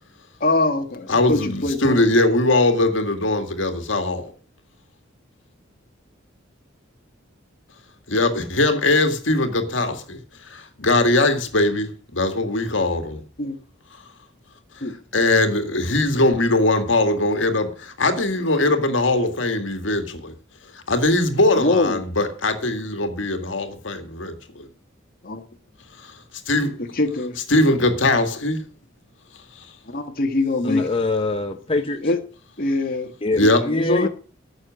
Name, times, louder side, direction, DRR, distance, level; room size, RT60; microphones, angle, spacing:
voice 1, 0.4-2.1 13.4-13.6 14.8-14.9 21.6-22.0 25.2-25.5 27.0-27.4 29.9-30.9 32.0-32.2 32.6-33.1 33.4-34.1, left 2 dB, 50° left, 1.5 m, -23 dB
voice 2, 1.1-4.3 8.1-10.2 10.5-13.2 14.8-14.9 15.1-20.3 20.7-24.7 26.0-26.1 26.5-26.8 27.5-28.6 33.3-33.6, left 2 dB, 70° left, 2.0 m, -21 dB
voice 3, 30.6-32.1 33.2-34.1, left 2 dB, 30° left, 0.8 m, -24 dB
14.5 x 6.6 x 6.3 m
head